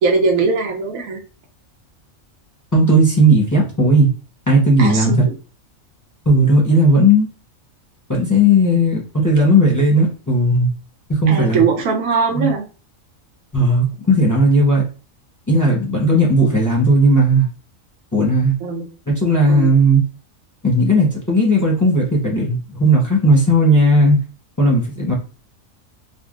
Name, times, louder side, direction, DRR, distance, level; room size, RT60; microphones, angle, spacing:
voice 1, 0.0-1.2 4.8-5.4 11.3-12.6 18.6-18.8 19.5-19.7, right 4 dB, 90° right, 2 dB, 1.2 m, -20 dB
voice 2, 2.7-4.1 4.5-5.2 6.3-7.3 8.1-10.7 11.1-11.6 12.3-12.5 13.5-14.8 15.5-17.5 18.1-18.5 19.1-20.0 20.6-24.2 24.6-25.1, equal, 20° left, -3 dB, 0.6 m, -15 dB
3.5 x 2.2 x 2.4 m, 0.35 s
omnidirectional pair, 1.4 m